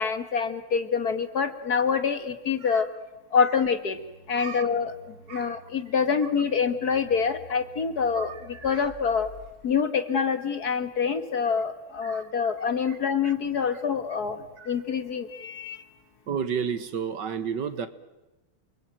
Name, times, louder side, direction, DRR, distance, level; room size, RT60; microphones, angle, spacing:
voice 1, 0.0-2.9 3.3-4.0 4.3-4.9 5.3-9.3 9.6-15.8, left 6 dB, 50° left, 1.9 m, -26 dB
sound 1, 3.9-9.7, left 2 dB, 65° left, 5.5 m, -50 dB
voice 2, 4.4-4.7 5.3-5.6 8.2-8.9 12.0-12.5 12.9-13.0 13.2-13.3 13.7-13.8 14.6-14.8 16.3-17.9, right 7 dB, 60° right, 1.8 m, -33 dB
29.5 x 22.0 x 9.1 m
omnidirectional pair, 2.3 m